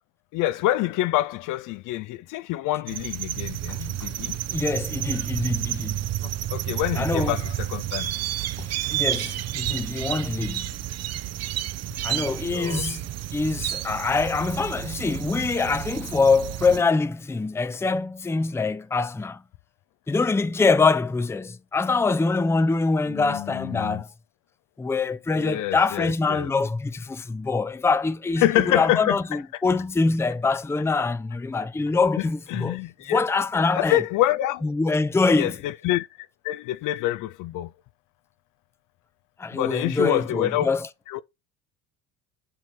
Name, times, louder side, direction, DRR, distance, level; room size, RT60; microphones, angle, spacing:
voice 1, 0.3-4.4 6.2-8.1 12.5-12.9 23.1-24.0 25.3-26.5 28.4-29.4 32.2-33.2 33.7-34.7 35.3-37.7 39.5-40.8 41.1-41.2, left 14 dB, 60° left, 0.5 m, -27 dB
sound 1, 2.9-16.8, right 13 dB, 45° right, 0.6 m, -30 dB
voice 2, 4.5-6.0 7.0-7.3 8.9-10.7 12.0-13.1 13.3-19.4 20.1-24.1 24.8-32.8 33.1-34.0 34.6-35.6 39.4-40.9, left 4 dB, 5° left, 0.5 m, -24 dB
7.6 x 3.1 x 5.8 m
hypercardioid pair, 65°, 36 cm